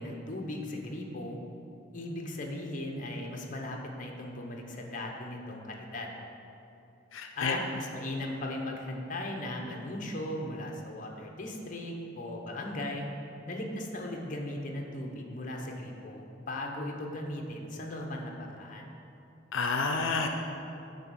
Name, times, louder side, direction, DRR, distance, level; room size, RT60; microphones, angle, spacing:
voice 1, 0.0-1.4 1.9-6.1 7.3-13.1 13.5-18.9, left 1 dB, 45° left, 1 dB, 0.8 m, -37 dB
voice 2, 7.1-7.6 19.5-20.3, left 4 dB, 90° left, 4 dB, 0.5 m, -29 dB
9.3 x 3.5 x 6.2 m, 2.8 s
head